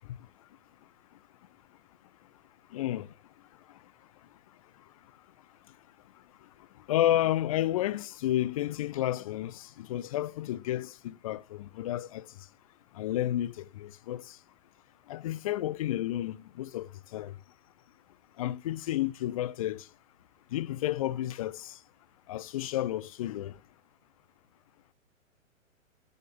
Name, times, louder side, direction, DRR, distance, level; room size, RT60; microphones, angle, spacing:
voice 1, 2.7-3.1 6.9-12.2 13.0-14.2 15.1-17.3 18.4-19.8 20.5-21.7 22.3-23.5, left 13 dB, 25° left, 0.6 m, -31 dB
12.5 x 10.0 x 3.5 m
figure-of-eight pair, 120°, 40 cm